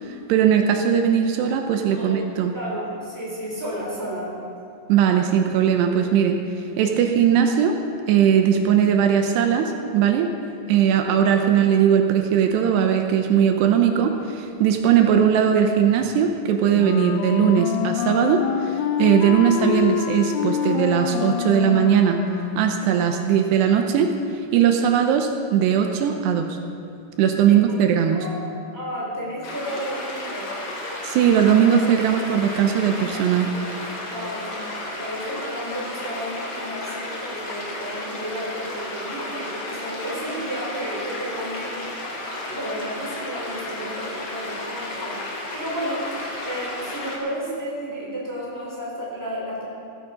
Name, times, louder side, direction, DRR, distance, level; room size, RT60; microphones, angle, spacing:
voice 1, 0.0-2.5 4.9-6.4 6.8-7.8 8.1-10.3 10.7-22.2 22.6-24.1 24.5-26.6 27.2-28.2 31.0-33.5, right 8 dB, 80° right, 5 dB, 2.9 m, -19 dB
voice 2, 1.9-2.3 2.5-4.3 10.8-11.1 27.4-27.6 28.1-28.4 28.7-30.5 34.0-42.0 42.5-46.1 46.4-49.6, equal, 5° left, -5 dB, 3.0 m, -32 dB
Wind instrument woodwind instrument, 16.7-22.9, left 9 dB, 80° left, 2.4 m, -26 dB
sound 1, 29.4-47.2, left 1 dB, 45° left, 2.4 m, -33 dB
16.5 x 14.0 x 5.1 m, 2.6 s
omnidirectional pair, 5.0 m